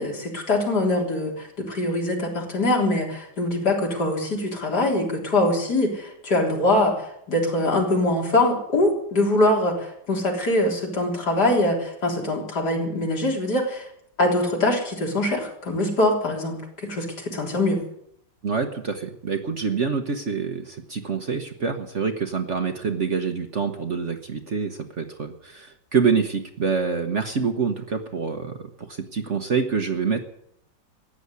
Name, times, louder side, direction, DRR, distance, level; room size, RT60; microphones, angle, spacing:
voice 1, 0.0-13.9 14.2-17.8, left 1 dB, 60° left, 0 dB, 4.2 m, -23 dB
voice 2, 18.4-30.2, right 5 dB, 45° right, 6 dB, 1.3 m, -26 dB
15.0 x 9.9 x 9.7 m, 0.71 s
omnidirectional pair, 2.0 m